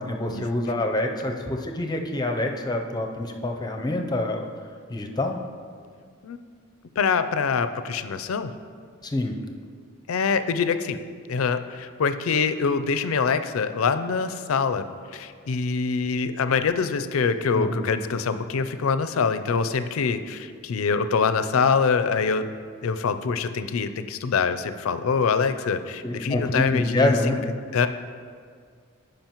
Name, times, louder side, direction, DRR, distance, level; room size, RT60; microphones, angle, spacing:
voice 1, 0.0-4.5 4.9-5.4 9.0-9.4 17.5-17.8 26.0-27.4, left 1 dB, 20° left, 3 dB, 0.5 m, -26 dB
voice 2, 7.0-8.5 10.1-11.0 11.3-14.9 15.1-22.4 22.8-27.4 27.7-27.9, left 5 dB, 85° left, 10 dB, 0.4 m, -24 dB
14.5 x 5.2 x 3.0 m, 2.1 s
head